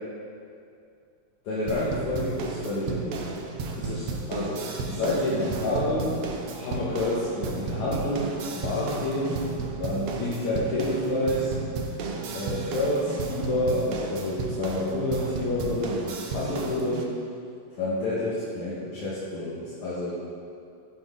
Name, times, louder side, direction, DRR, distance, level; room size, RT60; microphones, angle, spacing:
voice 1, 1.4-3.3 3.8-6.1 6.6-8.3 8.5-9.4 9.8-11.5 12.3-17.1 17.8-20.2, left 1 dB, 65° left, -8 dB, 3.0 m, -28 dB
sound 1, 1.7-17.0, right 4 dB, 65° right, 1.6 m, -33 dB
14.5 x 10.5 x 4.0 m, 2.4 s
omnidirectional pair, 3.8 m